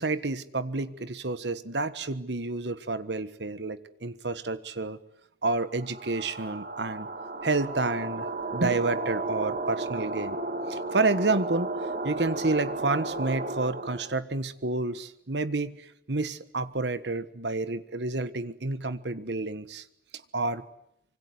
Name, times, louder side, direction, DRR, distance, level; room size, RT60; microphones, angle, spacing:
voice 1, 0.0-5.0 5.4-7.1 7.4-8.3 8.5-10.4 10.7-15.8 16.1-19.8 20.3-20.6, right 3 dB, 85° right, 13 dB, 1.4 m, -29 dB
sound 1, 5.8-14.2, right 2 dB, 55° right, 2.4 m, -34 dB
25.5 x 24.5 x 9.6 m, 0.75 s
head